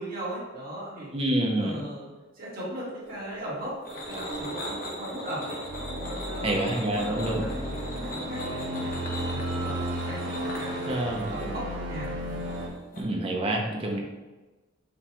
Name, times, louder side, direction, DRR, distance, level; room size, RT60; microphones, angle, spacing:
voice 1, 0.0-1.1 1.6-2.1 2.3-3.8 4.1-5.6 6.1-9.0 9.3-9.8 10.0-12.4, right 1 dB, 50° right, -7 dB, 1.4 m, -38 dB
voice 2, 1.1-1.8 6.4-7.4 10.9-11.6 12.9-14.0, right 1 dB, 30° right, 0 dB, 0.5 m, -28 dB
sound 1, 3.0-13.0, equal, 45° left, 0.8 m, -38 dB
sound 2, 5.6-12.7, equal, 65° right, 0.7 m, -34 dB
5.2 x 2.3 x 2.9 m, 1.2 s
head